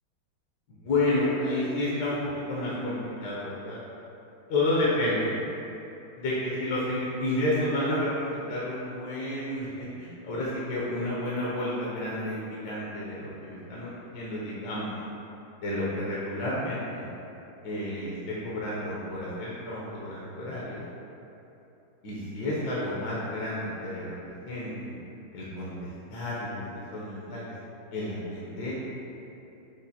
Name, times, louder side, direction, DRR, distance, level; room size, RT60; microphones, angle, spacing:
voice 1, 0.7-3.8 4.5-5.3 6.2-13.9 14.1-14.9 15.6-17.1 17.6-20.8 22.0-24.9 25.3-27.4 27.9-28.7, left 1 dB, 65° left, -7 dB, 1.1 m, -30 dB
6.8 x 2.5 x 2.7 m, 2.9 s
omnidirectional pair, 2.3 m